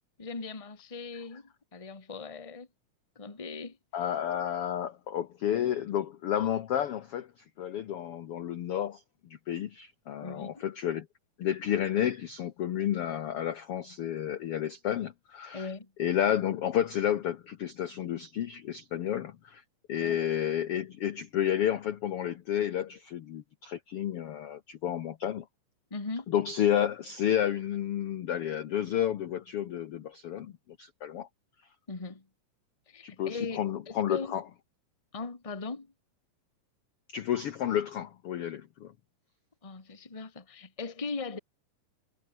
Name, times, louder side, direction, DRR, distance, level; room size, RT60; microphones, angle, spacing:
voice 1, 0.2-2.7 3.1-3.8 10.2-10.7 15.5-15.9 20.0-20.2 25.9-26.3 31.9-32.3 32.9-34.4 35.1-35.9 39.6-41.4, left 4 dB, 15° left, 1.4 m, -39 dB
voice 2, 3.9-11.1 11.4-15.7 16.0-19.6 19.9-25.5 26.3-30.5 30.8-31.3 33.0-34.4 37.1-38.9, left 10 dB, 65° left, 1.5 m, -31 dB
omnidirectional pair, 3.8 m